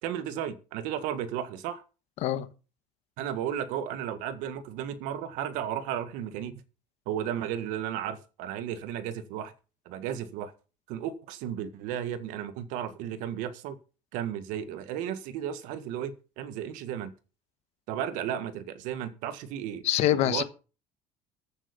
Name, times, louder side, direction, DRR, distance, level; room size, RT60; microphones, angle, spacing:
voice 1, 0.0-1.8 3.2-6.6 7.0-9.5 9.8-10.5 10.9-13.8 14.1-17.1 17.9-19.8 20.1-20.4, right 10 dB, 70° right, 1.7 m, -34 dB
voice 2, 19.8-20.4, left 13 dB, 50° left, 1.3 m, -25 dB
15.0 x 9.0 x 5.3 m
cardioid pair, 170°, 14 cm